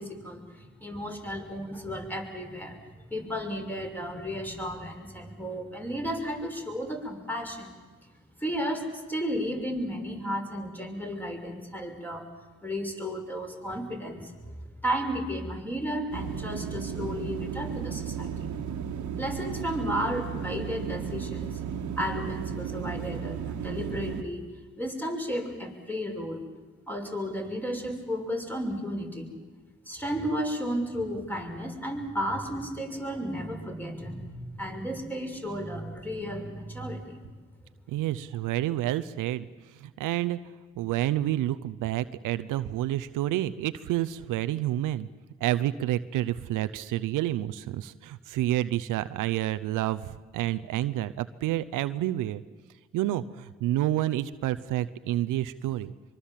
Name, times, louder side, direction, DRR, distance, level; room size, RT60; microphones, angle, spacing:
voice 1, 0.0-7.7 8.4-12.2 12.6-18.5 19.2-21.6 22.0-24.4 24.8-26.4 26.9-29.3 29.8-37.2, equal, 5° left, 2 dB, 6.2 m, -33 dB
sound 1, 16.1-24.2, right 8 dB, 70° right, 1.6 m, -34 dB
voice 2, 37.9-39.5 39.8-40.4 40.8-45.1 45.4-52.4 52.9-55.9, right 14 dB, 90° right, 13 dB, 0.7 m, -29 dB
24.0 x 24.0 x 7.4 m, 1.3 s
supercardioid pair, 45°, 31 cm